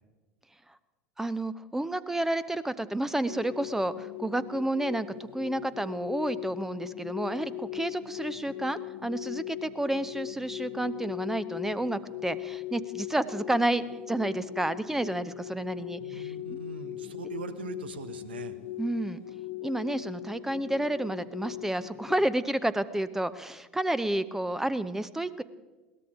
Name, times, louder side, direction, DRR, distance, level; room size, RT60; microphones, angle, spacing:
voice 1, 1.2-16.6 18.8-19.2 19.6-25.4, right 1 dB, 5° right, 14 dB, 0.6 m, -30 dB
sound 1, 3.3-22.3, left 14 dB, 55° left, 0.8 m, -39 dB
voice 2, 16.0-18.6, right 5 dB, 70° right, 11 dB, 1.1 m, -41 dB
21.5 x 18.0 x 3.7 m, 1.2 s
figure-of-eight pair, 75°, 6 cm